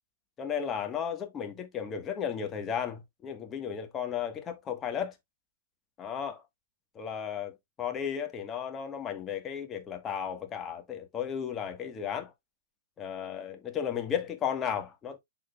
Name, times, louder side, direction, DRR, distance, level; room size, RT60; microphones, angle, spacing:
voice 1, 0.4-5.1 6.0-6.4 6.9-12.3 13.0-15.2, left 8 dB, 20° left, 1.3 m, -34 dB
11.5 x 3.9 x 2.3 m
figure-of-eight pair, 110°, 0 cm